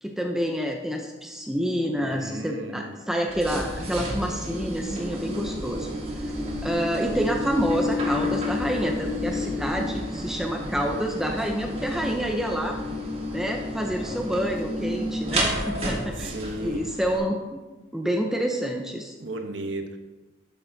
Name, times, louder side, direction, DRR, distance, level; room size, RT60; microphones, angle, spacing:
voice 1, 0.0-5.9 6.6-12.8 13.3-16.3 16.6-17.6 17.9-19.1, equal, 5° right, 2 dB, 0.6 m, -28 dB
voice 2, 1.9-2.9 16.2-16.8 19.2-20.0, right 1 dB, 85° right, 5 dB, 1.0 m, -35 dB
sound 1, 3.3-17.2, left 1 dB, 30° right, 1.6 m, -30 dB
11.5 x 6.6 x 2.7 m, 1.2 s
head